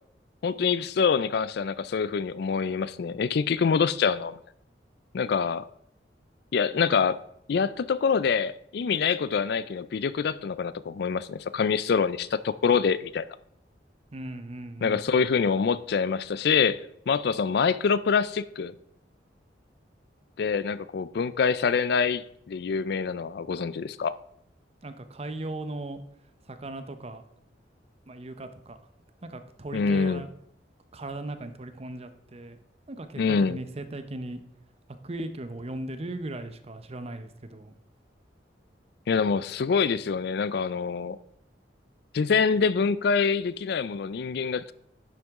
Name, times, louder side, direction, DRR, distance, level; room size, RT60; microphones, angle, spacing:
voice 1, 0.4-4.4 5.1-5.7 6.5-7.2 7.5-13.3 14.8-16.8 17.1-18.7 20.4-24.2 29.7-30.2 33.2-33.6 39.1-41.2 42.1-44.7, left 5 dB, 60° left, 0.4 m, -25 dB
voice 2, 14.1-15.0 24.8-26.0 26.5-27.2 28.1-28.8 29.2-30.3 30.9-32.6 32.9-34.4 35.0-37.7, right 2 dB, 35° right, 0.7 m, -37 dB
10.5 x 7.6 x 3.6 m
head